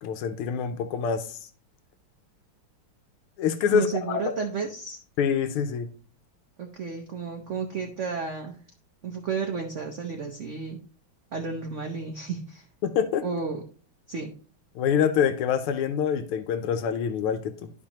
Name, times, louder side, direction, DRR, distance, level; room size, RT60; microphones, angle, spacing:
voice 1, 0.0-1.5 3.4-4.2 5.2-5.9 12.8-13.2 14.7-17.7, left 7 dB, 85° left, 9 dB, 1.6 m, -26 dB
voice 2, 3.7-5.0 6.6-8.5 9.0-10.8 11.3-12.6 13.2-13.6 14.1-14.3, right 5 dB, 85° right, 3 dB, 0.6 m, -32 dB
12.0 x 4.5 x 2.9 m, 0.41 s
omnidirectional pair, 2.4 m